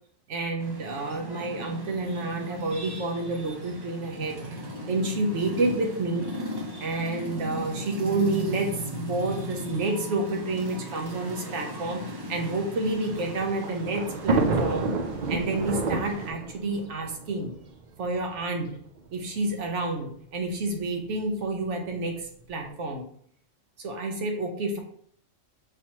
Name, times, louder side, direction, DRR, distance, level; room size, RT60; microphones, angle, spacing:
voice 1, 0.3-4.6 4.9-6.3 6.8-8.8 9.1-12.0 12.3-14.9 15.3-17.5 18.0-18.8 19.1-23.0 23.8-24.8, right 2 dB, 65° right, 3 dB, 1.1 m, -29 dB
sound 1, 0.6-16.3, equal, 25° right, 0.5 m, -37 dB
Thunder, 12.8-18.1 19.0-19.1 19.3-19.4 20.5-20.8, right 3 dB, 85° right, 0.4 m, -29 dB
5.3 x 2.9 x 2.9 m, 0.62 s
omnidirectional pair, 1.4 m